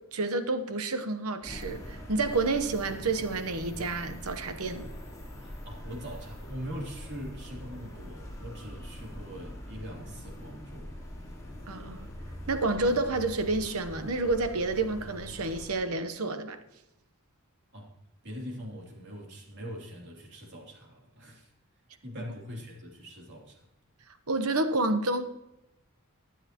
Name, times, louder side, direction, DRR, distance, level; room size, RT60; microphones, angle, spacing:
voice 1, 0.1-4.8 11.7-12.1 12.5-16.6 24.3-25.2, right 3 dB, 85° right, 1.0 m, -29 dB
sound 1, 1.4-15.8, equal, 15° left, 3.5 m, -43 dB
voice 2, 5.4-10.9 17.7-17.9 18.2-21.5 22.0-23.7, equal, 55° right, 3.1 m, -42 dB
22.5 x 7.7 x 3.0 m
head